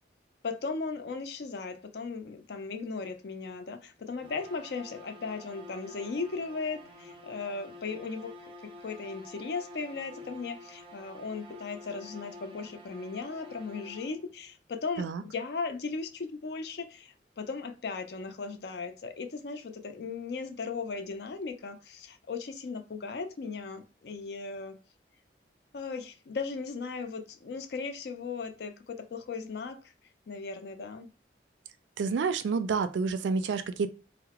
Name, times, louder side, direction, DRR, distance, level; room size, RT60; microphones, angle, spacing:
voice 1, 0.4-8.3 8.8-24.8 25.7-29.9 30.3-31.1, left 4 dB, 60° left, 0.4 m, -37 dB
sound 1, 4.2-14.4, left 1 dB, 30° right, 0.5 m, -49 dB
voice 2, 32.0-33.9, right 5 dB, 85° right, 0.3 m, -29 dB
2.8 x 2.1 x 2.8 m
head